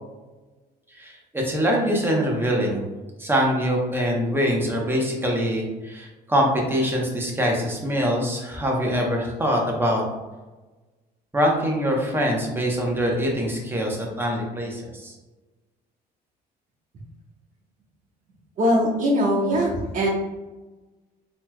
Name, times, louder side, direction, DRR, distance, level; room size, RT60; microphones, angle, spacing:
voice 1, 0.9-2.8 3.2-10.0 11.3-15.1, equal, 15° right, -1 dB, 0.9 m, -24 dB
voice 2, 18.6-20.1, equal, 50° right, -3 dB, 1.2 m, -21 dB
4.0 x 2.9 x 2.2 m, 1.2 s
cardioid pair, 110°, 17 cm